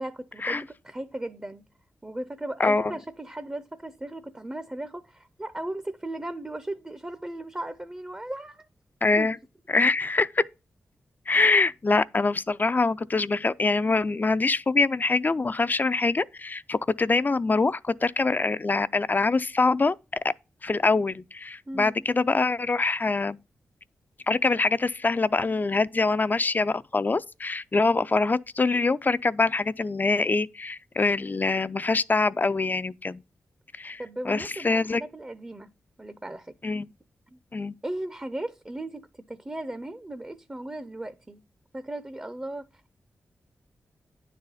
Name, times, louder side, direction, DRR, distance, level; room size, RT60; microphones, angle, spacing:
voice 1, 0.0-1.6 2.0-8.7 9.2-9.3 21.7-22.0 34.0-35.7 36.0-36.6 37.3-37.4 37.8-41.4 41.7-42.7, right 1 dB, 20° right, 0.5 m, -36 dB
voice 2, 2.6-2.9 9.0-9.4 9.7-10.4 11.3-20.3 20.6-23.4 24.3-33.2 33.8-35.0 36.6-36.9 37.5-37.7, left 3 dB, 35° left, 0.4 m, -24 dB
9.5 x 4.1 x 5.5 m
cardioid pair, 55°, 5 cm